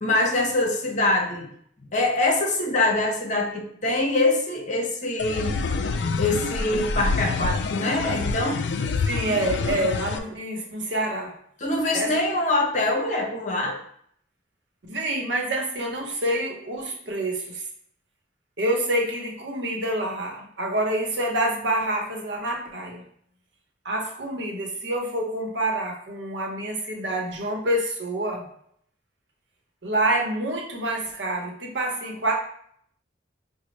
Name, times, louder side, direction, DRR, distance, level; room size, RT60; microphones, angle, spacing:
voice 1, 0.0-1.5 1.9-5.6 6.2-8.6 11.6-13.8, left 2 dB, 45° left, 1 dB, 0.8 m, -24 dB
sound 1, 5.2-10.2, left 4 dB, 75° left, 0.3 m, -27 dB
voice 2, 9.1-11.3 11.9-12.4 14.9-17.6 18.6-23.0 23.8-28.5 29.8-32.3, right 1 dB, 90° right, 0 dB, 0.9 m, -27 dB
5.1 x 2.1 x 3.1 m, 0.66 s
head